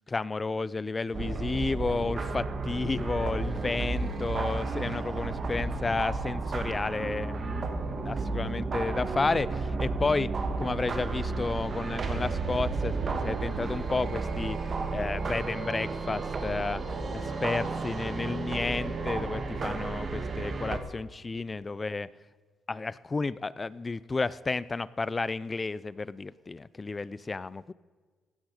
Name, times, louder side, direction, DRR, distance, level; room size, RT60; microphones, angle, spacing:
voice 1, 0.1-10.3 10.6-14.6 14.9-22.1 22.7-27.7, left 3 dB, 25° left, 20 dB, 0.4 m, -32 dB
sound 1, 1.1-20.8, right 3 dB, 40° right, 1.6 m, -32 dB
16.5 x 10.0 x 4.9 m, 1.4 s
cardioid pair, 90°, 0 cm